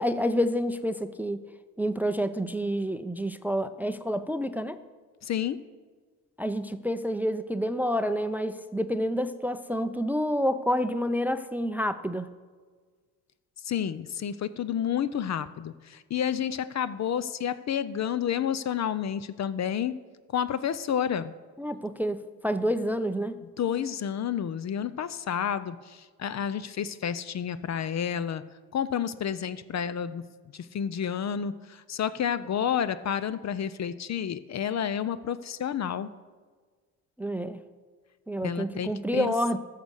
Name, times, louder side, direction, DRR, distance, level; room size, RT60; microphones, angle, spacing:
voice 1, 0.0-1.5 1.8-4.8 6.4-12.3 21.6-23.4 37.2-37.6 38.3-39.6, equal, 5° right, 13 dB, 0.5 m, -28 dB
voice 2, 5.2-5.6 13.6-20.0 20.3-21.3 23.6-28.4 28.7-30.3 30.5-36.1 38.4-39.3, left 8 dB, 40° left, 15 dB, 0.6 m, -30 dB
14.0 x 6.6 x 6.4 m, 1.5 s
hypercardioid pair, 60°, 43 cm